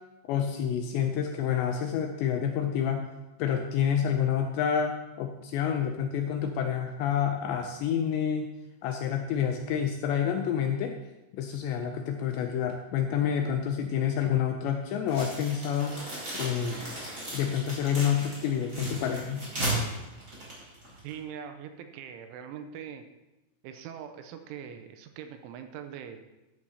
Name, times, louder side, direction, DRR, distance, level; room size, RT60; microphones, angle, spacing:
voice 1, 0.3-3.1 3.4-8.5 8.8-11.0 11.3-15.9 16.3-16.8 17.3-19.5, left 8 dB, 85° left, 5 dB, 2.6 m, -28 dB
sound 1, 15.1-21.2, right 1 dB, 20° right, 4.5 m, -35 dB
voice 2, 21.0-23.1 23.6-26.2, right 8 dB, 85° right, 7 dB, 3.1 m, -42 dB
13.5 x 12.0 x 2.8 m, 1.0 s
omnidirectional pair, 5.7 m